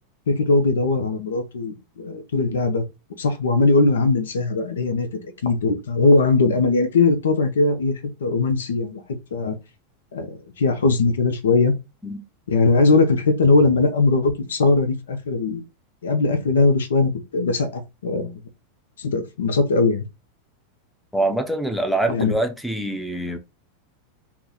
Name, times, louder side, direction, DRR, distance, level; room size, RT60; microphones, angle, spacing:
voice 1, 0.3-2.8 3.2-5.1 5.4-7.9 8.2-9.0 9.3-9.6 10.1-11.7 12.5-15.6 16.0-18.4 19.0-20.0 22.1-22.3, left 3 dB, 80° left, 0.6 m, -20 dB
voice 2, 21.1-23.4, right 2 dB, ahead, 0.6 m, -24 dB
2.8 x 2.1 x 3.8 m
hypercardioid pair, 100°, 0 cm